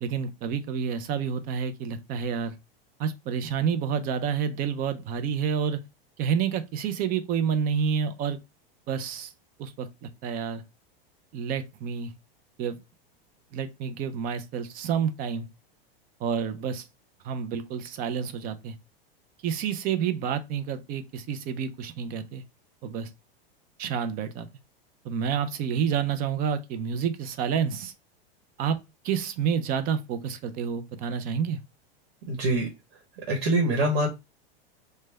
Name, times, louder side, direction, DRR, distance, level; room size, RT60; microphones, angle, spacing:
voice 1, 0.0-2.5 3.0-5.8 6.2-8.4 8.9-9.3 9.6-10.6 11.3-12.1 12.6-12.8 13.5-15.5 16.2-16.8 17.2-18.8 19.4-22.4 22.8-23.1 23.8-24.5 25.0-27.9 28.6-28.8 29.0-31.6, right 7 dB, 30° right, 0.4 m, -29 dB
voice 2, 32.3-32.7 33.3-34.1, right 1 dB, 75° right, 1.1 m, -24 dB
3.2 x 2.2 x 3.2 m
supercardioid pair, 135°, 30 cm